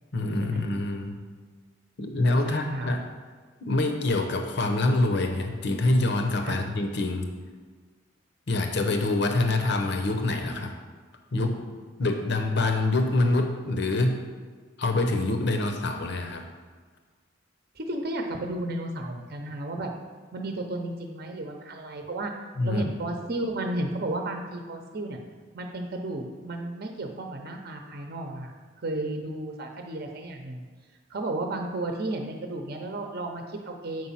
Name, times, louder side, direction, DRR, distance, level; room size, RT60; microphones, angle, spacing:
voice 1, 0.1-1.2 2.0-3.0 3.6-7.3 8.5-10.7 11.3-14.2 14.8-16.4 22.6-22.8, left 2 dB, 60° left, 5 dB, 0.8 m, -25 dB
voice 2, 2.4-2.9 6.4-6.6 17.8-19.9 20.3-22.3 22.6-25.2 25.5-28.5 28.8-30.6 31.1-34.1, right 2 dB, 50° right, 3 dB, 0.8 m, -33 dB
7.8 x 5.1 x 5.7 m, 1.5 s
head